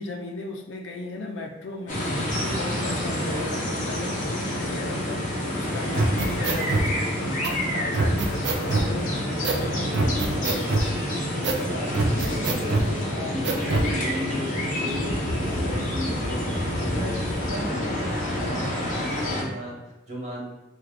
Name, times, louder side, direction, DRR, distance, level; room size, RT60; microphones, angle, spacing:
voice 1, 0.0-10.2 12.7-14.1 18.4-18.8, left 2 dB, 80° left, 3 dB, 0.5 m, -37 dB
sound 1, 1.9-19.4, left 1 dB, 40° left, 0.7 m, -28 dB
voice 2, 3.2-3.7 9.7-10.7 11.5-13.0 13.3-18.1 18.4-20.5, equal, 40° right, -6 dB, 1.2 m, -35 dB
sound 2, 5.9-6.9 7.4-7.5 7.9-8.9 9.4-9.6 9.9-10.9 11.4-11.6 11.9-12.9 13.4-13.9, right 2 dB, 65° right, 0.4 m, -24 dB
4.6 x 2.3 x 2.4 m, 0.97 s
head